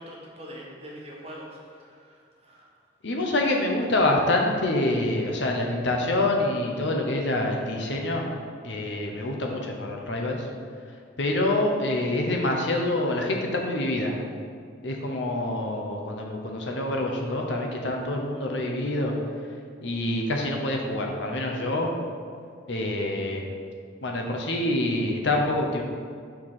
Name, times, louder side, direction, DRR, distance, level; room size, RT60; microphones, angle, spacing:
voice 1, 0.0-2.7, equal, 30° right, -3 dB, 1.1 m, -43 dB
voice 2, 3.0-8.2 8.6-10.5 11.2-14.2 14.8-19.1 19.8-21.9 22.7-23.5 24.0-25.8, left 1 dB, 70° left, 1 dB, 0.8 m, -26 dB
4.8 x 4.6 x 5.6 m, 2.2 s
head